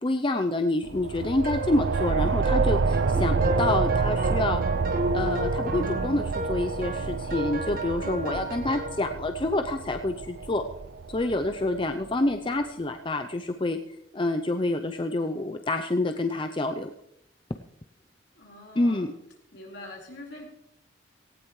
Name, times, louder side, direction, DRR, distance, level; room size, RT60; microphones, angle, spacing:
voice 1, 0.0-4.6 5.1-10.6 11.1-13.8 14.1-16.9 18.8-19.1, left 2 dB, 25° left, 7 dB, 0.6 m, -27 dB
sound 1, 0.8-12.1, right 4 dB, 70° right, 0.5 m, -28 dB
sound 2, 1.0-11.3, equal, 15° right, 7.3 m, -55 dB
sound 3, 1.4-9.1, right 1 dB, 45° right, 1.8 m, -33 dB
voice 2, 18.3-19.1 19.5-20.5, left 2 dB, 65° left, -1 dB, 4.6 m, -45 dB
18.0 x 16.5 x 3.2 m, 0.77 s
head